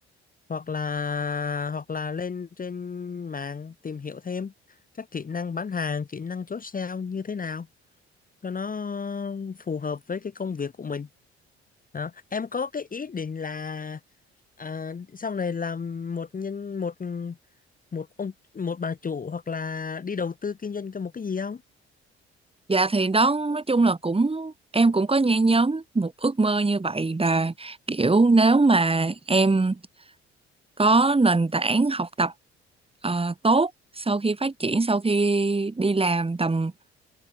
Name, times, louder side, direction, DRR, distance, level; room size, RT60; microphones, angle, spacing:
voice 1, 0.5-4.5 5.0-7.7 8.4-11.1 11.9-14.0 14.6-17.4 17.9-21.6, left 5 dB, 25° left, 1.3 m, -32 dB
voice 2, 22.7-29.8 30.8-32.3 33.0-33.7 34.0-36.7, right 3 dB, 15° right, 2.4 m, -22 dB
figure-of-eight pair, 45°, 32 cm